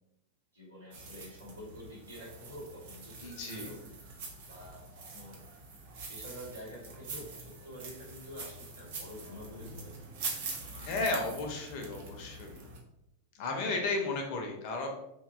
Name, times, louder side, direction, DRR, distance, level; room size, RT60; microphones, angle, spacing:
voice 1, 0.5-3.8 4.5-4.8 5.1-5.4 6.1-10.0 10.5-11.1 13.4-13.5, equal, 80° right, -5 dB, 1.0 m, -48 dB
sound 1, 0.9-12.8, right 3 dB, 50° right, 0.5 m, -44 dB
voice 2, 3.2-3.7 10.8-12.6 13.4-14.9, left 3 dB, 45° left, 2 dB, 0.5 m, -34 dB
2.7 x 2.1 x 2.4 m, 0.86 s
figure-of-eight pair, 90°, 0 cm